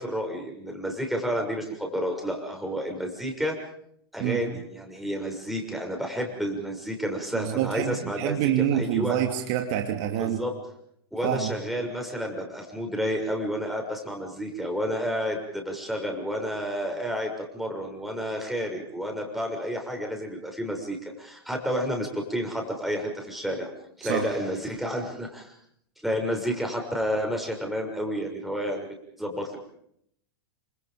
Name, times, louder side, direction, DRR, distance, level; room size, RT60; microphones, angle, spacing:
voice 1, 0.0-3.6 4.1-9.2 10.2-10.5 11.1-23.7 24.0-25.5 26.0-29.6, equal, ahead, 2 dB, 6.7 m, -30 dB
voice 2, 7.3-10.4 11.2-11.5 24.0-24.3, right 11 dB, 45° right, 4 dB, 2.8 m, -26 dB
28.0 x 26.5 x 5.2 m, 0.72 s
figure-of-eight pair, 100°, 13 cm